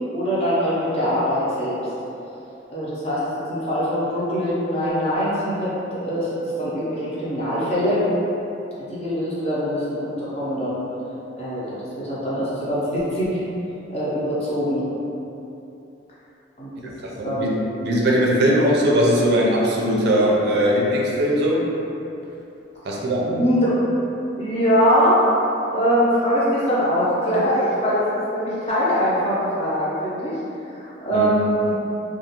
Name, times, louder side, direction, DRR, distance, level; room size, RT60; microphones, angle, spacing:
voice 1, 0.1-1.8 2.7-3.2 3.5-8.0 8.9-10.8 11.4-13.3 13.9-14.8 16.6-16.9 17.2-17.5 23.3-23.8 24.4-25.2 25.7-30.4 30.7-31.8, equal, 35° left, -9 dB, 0.7 m, -22 dB
voice 2, 17.2-17.5 17.8-21.6 22.8-23.4 31.1-31.3, equal, 60° right, -3 dB, 0.4 m, -19 dB
2.4 x 2.4 x 2.9 m, 2.9 s
head